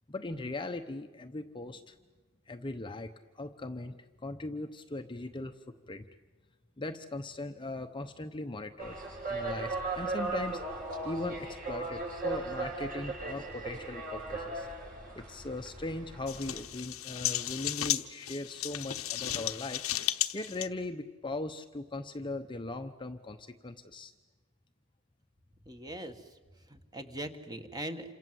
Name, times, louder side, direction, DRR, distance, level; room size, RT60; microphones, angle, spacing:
voice 1, 0.1-1.9 2.5-5.5 5.9-6.1 6.8-9.0 9.3-10.6 11.0-14.7 15.1-19.9 20.3-24.1, left 2 dB, 25° left, 7 dB, 0.9 m, -39 dB
sound 1, 8.8-16.6, right 3 dB, 45° right, 7.1 m, -37 dB
sound 2, 16.3-20.7, left 13 dB, 85° left, 1.0 m, -34 dB
voice 2, 25.6-26.2 26.7-28.2, right 1 dB, 20° right, 7 dB, 1.7 m, -41 dB
28.0 x 26.5 x 7.8 m, 1.3 s
head